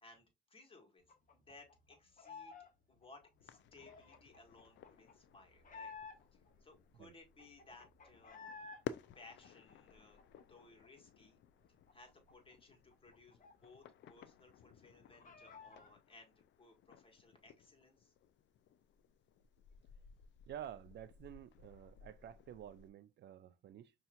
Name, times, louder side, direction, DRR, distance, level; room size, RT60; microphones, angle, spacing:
voice 1, 0.0-2.6 2.9-5.9 6.3-8.6 9.1-10.2 10.5-11.4 11.9-18.1, left 3 dB, 25° left, 1.7 m, -61 dB
sound 1, 1.1-2.7 3.0-6.5 6.9-7.0 7.2-8.8 9.1-10.9 11.2-11.3 11.6-14.1 14.3-14.4 14.8-15.9, left 5 dB, 45° left, 1.0 m, -55 dB
sound 2, 3.4-22.9, left 9 dB, 65° left, 0.4 m, -56 dB
voice 2, 20.5-23.9, right 10 dB, 60° right, 0.4 m, -51 dB
5.4 x 2.9 x 2.4 m
cardioid pair, 90°, 20 cm